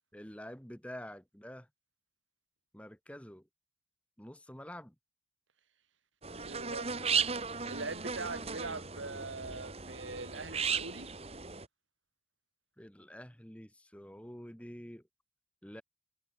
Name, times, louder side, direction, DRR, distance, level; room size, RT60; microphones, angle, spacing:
voice 1, 0.1-1.7 2.7-3.5 4.2-4.9 12.8-15.0 15.6-15.8, equal, 5° left, 2.8 m, -47 dB
sound 1, 6.2-11.7, right 6 dB, 30° right, 1.9 m, -36 dB
voice 2, 6.3-7.1 7.7-11.1, right 3 dB, 85° right, 3.4 m, -42 dB
head